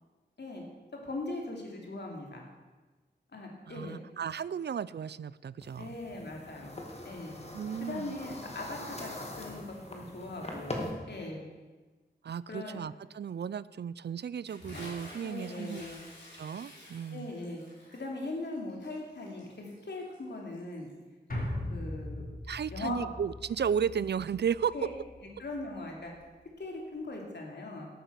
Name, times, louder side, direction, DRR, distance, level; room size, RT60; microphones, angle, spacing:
voice 1, 0.9-2.4 3.3-4.1 5.7-6.8 7.0-7.4 7.8-11.4 12.5-12.8 15.2-16.0 17.1-17.6 17.9-20.9 21.7-22.2 22.7-23.1 24.7-24.9 25.4-26.1 26.6-27.9, left 2 dB, 70° left, 0 dB, 2.8 m, -40 dB
voice 2, 3.7-5.9 7.5-8.2 12.2-15.8 16.4-17.3 22.5-24.7, right 7 dB, 70° right, 19 dB, 0.4 m, -34 dB
sound 1, 5.6-10.9, left 1 dB, 35° left, 2.1 m, -42 dB
Bathtub (filling or washing) / Splash splatter, 14.4-21.0, left 1 dB, 85° left, 4.9 m, -50 dB
sound 2, 21.3-25.7 26.1-26.2, left 1 dB, 50° left, 2.9 m, -40 dB
11.5 x 8.9 x 6.9 m, 1.3 s
wide cardioid pair, 85°, 18 cm